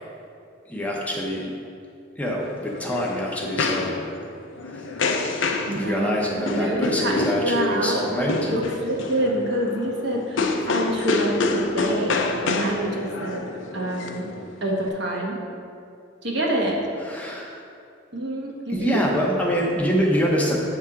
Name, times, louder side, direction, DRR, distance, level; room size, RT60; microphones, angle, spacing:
voice 1, 0.6-1.5 2.2-4.0 4.6-4.9 5.7-8.5 17.0-17.6 18.7-20.6, equal, 5° left, -3 dB, 0.7 m, -25 dB
sound 1, 2.4-14.9, left 3 dB, 70° left, 0.5 m, -28 dB
voice 2, 5.7-8.1 8.5-13.4 13.7-14.2 14.6-15.4 16.2-16.9 18.1-19.0, right 1 dB, 60° right, -2 dB, 1.1 m, -26 dB
8.4 x 3.7 x 5.6 m, 2.5 s
head